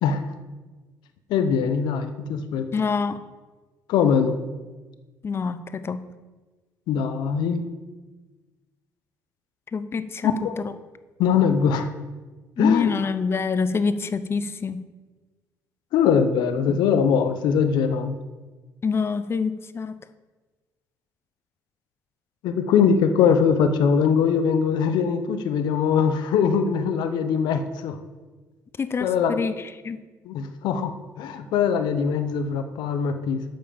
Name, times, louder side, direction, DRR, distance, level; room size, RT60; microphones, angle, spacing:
voice 1, 1.3-2.7 3.9-4.4 6.9-7.7 10.2-10.6 11.2-11.9 12.6-12.9 15.9-18.2 22.4-28.0 29.0-29.4 30.3-33.4, left 6 dB, 80° left, 9 dB, 0.9 m, -22 dB
voice 2, 2.7-3.2 5.2-6.0 9.7-10.7 12.6-14.8 18.8-20.0 28.8-30.0, left 5 dB, 35° left, 13 dB, 0.7 m, -26 dB
8.8 x 5.6 x 7.0 m, 1.3 s
cardioid pair, 90°, 7 cm